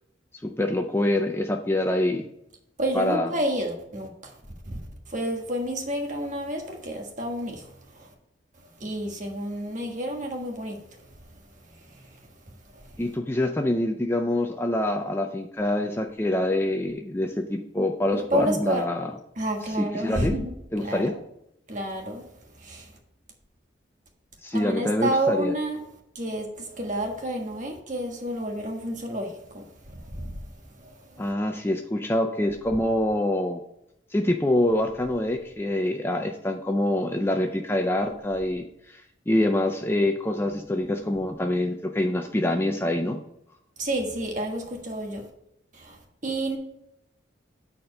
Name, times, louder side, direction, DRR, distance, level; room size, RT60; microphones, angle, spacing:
voice 1, 0.4-2.3 2.9-3.3 13.0-19.1 19.8-20.4 20.7-21.2 24.4-25.5 31.2-33.6 34.1-43.2, left 1 dB, 10° left, 0.4 m, -25 dB
voice 2, 2.8-4.4 4.6-8.1 8.8-11.1 11.6-12.3 12.7-13.0 18.1-18.8 19.4-20.5 20.8-21.2 21.7-22.3 22.5-22.9 24.5-25.8 26.1-31.3 43.8-45.3 45.7-46.6, right 1 dB, 40° right, 1.4 m, -30 dB
9.0 x 4.3 x 5.3 m
head